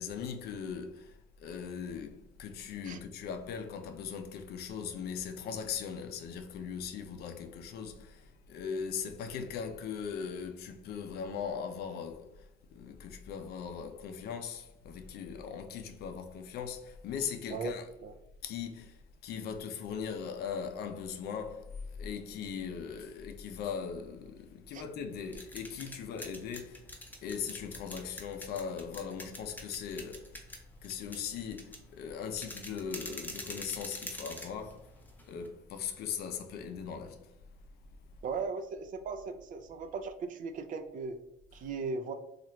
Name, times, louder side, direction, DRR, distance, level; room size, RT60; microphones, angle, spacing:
voice 1, 0.0-12.3 12.7-17.8 18.4-26.8 27.2-30.3 30.8-34.9 35.2-37.3, left 7 dB, 70° left, 0.5 m, -39 dB
voice 2, 17.5-18.1 24.7-24.8 38.2-41.2 41.5-42.1, right 4 dB, 50° right, 0.4 m, -38 dB
sound 1, 25.1-35.5, left 1 dB, 10° left, 0.6 m, -46 dB
2.9 x 2.4 x 3.1 m
cardioid pair, 110°, 17 cm